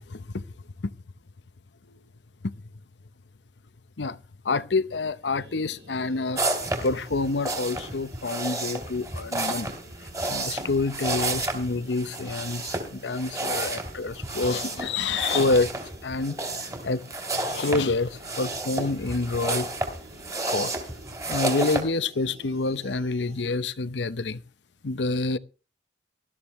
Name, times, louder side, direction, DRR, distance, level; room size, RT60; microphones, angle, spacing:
voice 1, 0.1-0.4 4.0-4.2 4.5-6.4 6.8-9.7 10.3-15.7 16.0-16.4 16.8-17.0 17.4-19.7 20.5-20.7 21.3-24.4 24.8-25.4, left 3 dB, 80° left, 0.8 m, -27 dB
sound 1, 5.2-23.5, right 1 dB, 75° right, 5.2 m, -50 dB
sound 2, 6.3-21.8, right 2 dB, 20° right, 3.0 m, -31 dB
18.5 x 13.0 x 3.1 m
head